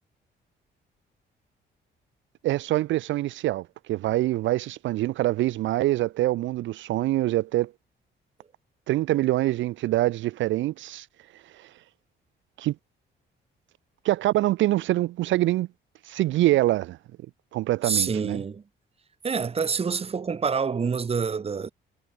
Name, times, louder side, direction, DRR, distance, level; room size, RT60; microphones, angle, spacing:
voice 1, 2.4-7.7 8.9-11.1 11.3-11.7 12.6-12.7 14.0-15.7 16.0-17.0 17.5-18.4, right 16 dB, 70° right, 0.4 m, -25 dB
voice 2, 17.8-18.6 19.2-21.7, right 5 dB, 30° right, 0.9 m, -27 dB
cardioid pair, 90°, 20 cm